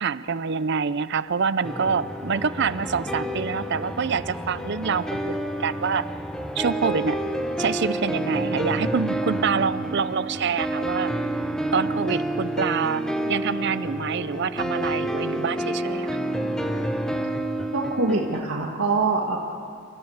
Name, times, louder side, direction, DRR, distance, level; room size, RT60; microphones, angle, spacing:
voice 1, 0.0-6.1 6.6-7.2 7.6-11.1 11.7-16.2, right 5 dB, 55° right, 15 dB, 0.6 m, -26 dB
sound 1, 1.6-18.4, right 1 dB, 5° left, 0.9 m, -29 dB
voice 2, 17.7-19.4, right 3 dB, 90° right, -1 dB, 1.7 m, -24 dB
29.5 x 14.0 x 7.9 m, 2.5 s
head